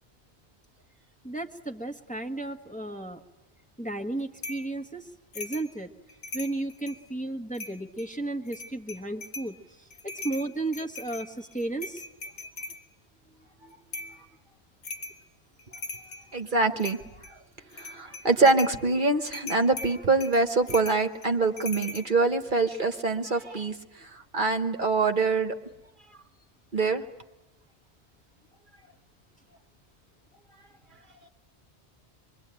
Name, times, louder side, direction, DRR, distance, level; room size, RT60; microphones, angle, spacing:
voice 1, 1.2-3.2 3.8-5.1 5.3-5.9 6.3-12.0, right 2 dB, 5° left, 3 dB, 1.4 m, -34 dB
sound 1, 4.4-4.7 5.3-5.7 6.1-7.0 7.5-8.1 8.5-9.5 9.9-12.8 13.9-14.2 14.8-15.2 15.6-16.3 16.8-17.3 17.7-18.8 19.3-22.1, left 2 dB, 70° left, 1.5 m, -40 dB
voice 2, 16.3-17.0 17.7-23.8 24.0-25.6 26.7-27.0, right 3 dB, 50° right, 6 dB, 1.3 m, -24 dB
26.5 x 23.0 x 9.0 m, 1.0 s
omnidirectional pair, 1.1 m